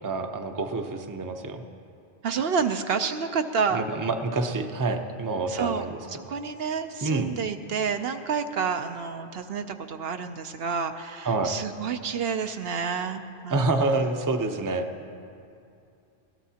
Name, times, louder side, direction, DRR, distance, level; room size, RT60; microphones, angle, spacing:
voice 1, 0.0-1.6 3.7-6.0 6.2-6.3 7.0-7.3 11.2-11.5 13.5-14.9, right 3 dB, 20° right, 5 dB, 0.6 m, -27 dB
voice 2, 2.2-3.9 5.5-5.9 6.3-13.9, right 6 dB, 70° right, 7 dB, 0.8 m, -29 dB
21.0 x 16.5 x 2.8 m, 2.5 s
omnidirectional pair, 1.1 m